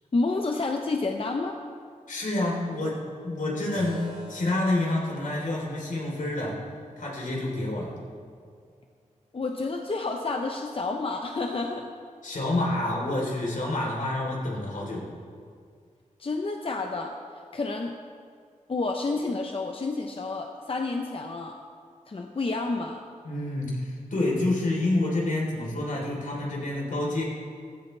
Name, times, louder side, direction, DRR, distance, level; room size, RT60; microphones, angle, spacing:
voice 1, 0.1-1.6 9.3-11.9 16.2-17.1 17.5-17.9 18.7-21.6 22.1-23.0, left 3 dB, 45° left, 3 dB, 0.8 m, -29 dB
voice 2, 2.1-6.6 7.0-8.0 12.2-15.1 23.2-27.2, left 2 dB, 80° left, -3 dB, 3.6 m, -28 dB
Keyboard (musical), 3.7-8.8, equal, 65° right, 4.3 m, -48 dB
15.5 x 15.5 x 3.4 m, 2.1 s
wide cardioid pair, 100°, 13 cm